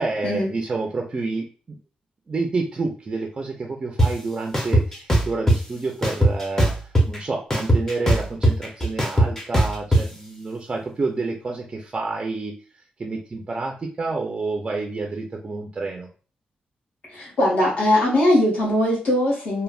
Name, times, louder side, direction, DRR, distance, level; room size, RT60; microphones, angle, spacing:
voice 1, 0.0-1.8 2.3-12.5 13.0-16.1, right 3 dB, 30° right, 1 dB, 0.3 m, -29 dB
sound 1, 4.0-4.1 4.5-5.6 6.0-7.2 7.5-10.0, right 1 dB, 15° left, 0.6 m, -18 dB
voice 2, 17.1-19.6, left 1 dB, 65° left, -4 dB, 1.0 m, -20 dB
3.2 x 2.0 x 2.3 m, 0.38 s
wide cardioid pair, 155°, 3 cm